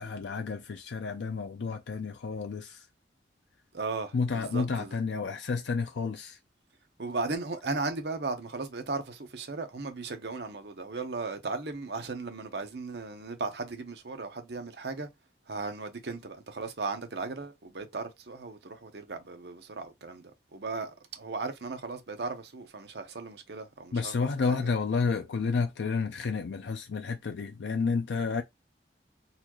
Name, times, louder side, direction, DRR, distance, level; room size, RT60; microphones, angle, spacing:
voice 1, 0.0-2.9 4.1-6.4 23.9-28.4, left 4 dB, 85° left, 0.5 m, -30 dB
voice 2, 3.7-5.0 7.0-15.1 15.5-24.2 24.4-24.6, right 3 dB, 70° right, 0.8 m, -36 dB
4.1 x 2.4 x 3.0 m
head